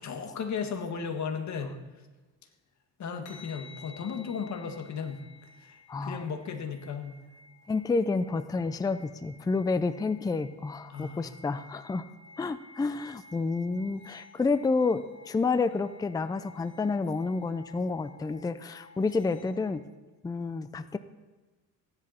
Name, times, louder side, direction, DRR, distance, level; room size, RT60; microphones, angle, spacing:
voice 1, 0.0-1.8 3.0-5.2 5.6-7.2 10.9-11.3, left 6 dB, 45° left, 4 dB, 1.9 m, -35 dB
sound 1, 3.3-19.7, left 3 dB, 85° left, 3.0 m, -54 dB
voice 2, 5.9-6.2 7.7-12.0 12.4-19.8 20.2-21.0, left 4 dB, 10° left, 12 dB, 0.4 m, -29 dB
15.5 x 11.0 x 4.3 m, 1.2 s
cardioid pair, 120°, 38 cm